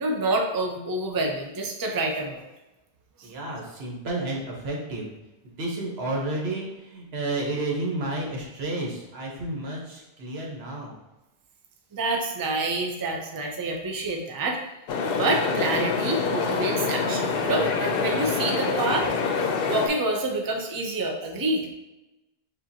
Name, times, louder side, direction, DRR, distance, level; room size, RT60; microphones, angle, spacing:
voice 1, 0.0-2.4 3.2-3.3 11.9-14.6 15.2-19.1 19.7-21.7, right 2 dB, 30° right, 1 dB, 0.5 m, -27 dB
voice 2, 3.2-5.1 5.4-10.9, right 2 dB, 80° right, -2 dB, 1.3 m, -31 dB
sound 1, 14.9-19.9, left 4 dB, 70° left, 0.7 m, -26 dB
7.5 x 2.5 x 2.8 m, 1.0 s
omnidirectional pair, 1.0 m